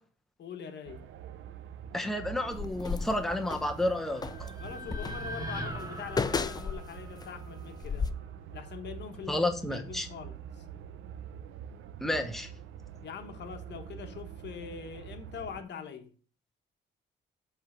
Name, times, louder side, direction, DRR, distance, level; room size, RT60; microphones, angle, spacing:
voice 1, 0.4-1.1 4.6-8.1 8.5-10.7 13.0-16.1, left 7 dB, 60° left, 1.0 m, -43 dB
sound 1, 0.9-15.6, right 9 dB, 85° right, 0.7 m, -45 dB
voice 2, 1.9-4.5 9.3-10.1 12.0-12.5, left 1 dB, ahead, 0.8 m, -31 dB
sound 2, 2.5-3.7 4.2-7.3 7.8-8.1, left 5 dB, 20° left, 0.5 m, -34 dB
sound 3, 3.8-8.0, equal, 20° right, 1.5 m, -42 dB
7.9 x 3.3 x 6.1 m
cardioid pair, 90°, 20 cm